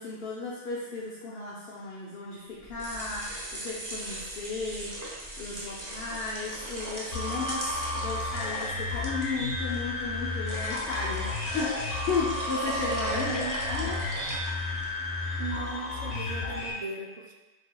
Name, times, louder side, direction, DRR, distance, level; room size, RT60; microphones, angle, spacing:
voice 1, 0.0-5.0 5.4-13.4 13.7-14.0, left 4 dB, 60° left, -5 dB, 0.8 m, -34 dB
sound 1, 2.6-14.9, right 1 dB, 20° right, 0.7 m, -38 dB
sound 2, 7.1-16.7, left 2 dB, 85° left, 1.3 m, -33 dB
voice 2, 13.3-14.0 15.4-17.3, right 4 dB, 55° right, 1 dB, 0.4 m, -38 dB
6.9 x 3.3 x 2.2 m, 1.2 s
omnidirectional pair, 1.2 m